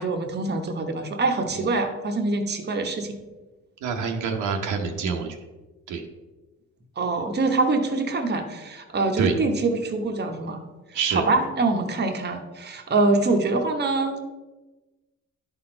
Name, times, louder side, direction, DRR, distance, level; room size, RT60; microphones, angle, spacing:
voice 1, 0.0-3.2 7.0-10.6 11.1-14.2, right 3 dB, 35° right, 4 dB, 1.1 m, -24 dB
voice 2, 3.8-5.4 5.9-6.0 9.2-9.3 10.9-11.2, right 5 dB, 80° right, 3 dB, 1.0 m, -26 dB
10.5 x 4.3 x 4.4 m, 1.2 s
cardioid pair, 90°, 30 cm